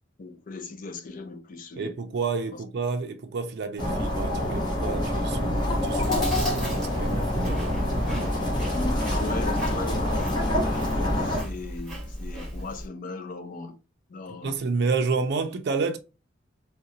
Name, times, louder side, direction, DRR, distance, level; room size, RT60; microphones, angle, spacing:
voice 1, 0.2-1.9 8.7-13.8 14.1-14.6, left 3 dB, 45° left, 0.5 m, -38 dB
voice 2, 1.7-7.8 14.4-16.0, right 4 dB, 60° right, 0.4 m, -30 dB
sound 1, 3.8-11.4, left 1 dB, 25° left, 1.1 m, -26 dB
Chewing mastication, 5.6-12.9, equal, ahead, 1.6 m, -36 dB
3.7 x 2.2 x 2.6 m
head